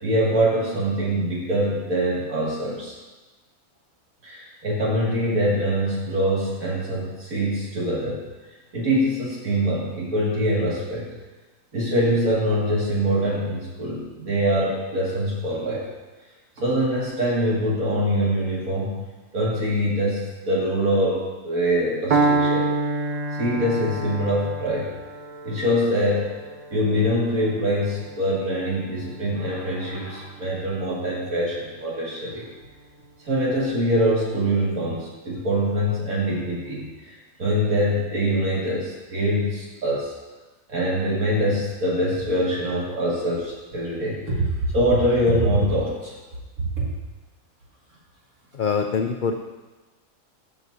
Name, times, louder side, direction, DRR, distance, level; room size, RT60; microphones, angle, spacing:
voice 1, 0.0-2.9 4.2-8.3 8.7-11.2 11.7-15.8 16.6-19.1 19.3-22.7 23.0-24.9 25.4-26.3 26.7-32.5 33.2-40.1 40.7-44.5 44.7-46.1 46.6-46.7, equal, 85° right, -6 dB, 2.7 m, -24 dB
Piano, 22.1-30.0, right 3 dB, 60° right, 0.4 m, -28 dB
voice 2, 48.5-49.3, left 5 dB, 75° left, 4 dB, 0.4 m, -24 dB
15.5 x 6.0 x 2.7 m, 1.2 s
omnidirectional pair, 1.4 m